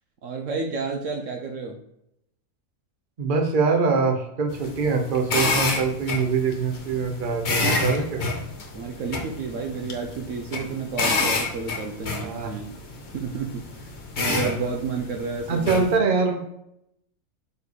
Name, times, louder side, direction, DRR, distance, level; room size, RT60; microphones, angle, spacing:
voice 1, 0.2-1.8 8.7-12.7 13.1-15.9, right 4 dB, 65° right, 3 dB, 1.0 m, -31 dB
voice 2, 3.2-8.2 12.2-12.5 14.4-14.7 15.5-16.5, right 4 dB, 40° right, 4 dB, 1.0 m, -24 dB
sound 1, 4.5-15.9, left 3 dB, 55° left, 1.2 m, -29 dB
5.1 x 4.5 x 4.8 m, 0.80 s
omnidirectional pair, 1.5 m